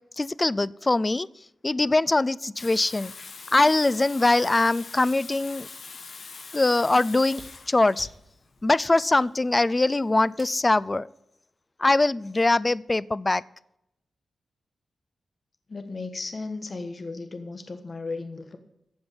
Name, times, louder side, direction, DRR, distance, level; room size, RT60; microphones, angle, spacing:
voice 1, 0.2-1.3 1.6-3.1 3.5-5.7 6.5-7.4 7.7-8.1 8.6-11.1 11.8-13.4, left 2 dB, 20° left, 20 dB, 0.4 m, -22 dB
Water tap faucet / Sink (filling or washing), 2.6-10.2, left 4 dB, 55° left, 1.5 m, -43 dB
sound 1, 7.3-10.7 12.1-12.2, right 1 dB, 25° right, 4.7 m, -51 dB
voice 2, 15.7-18.6, left 3 dB, 35° left, 8 dB, 1.3 m, -35 dB
15.0 x 5.3 x 9.6 m, 0.80 s
wide cardioid pair, 120°, 0 cm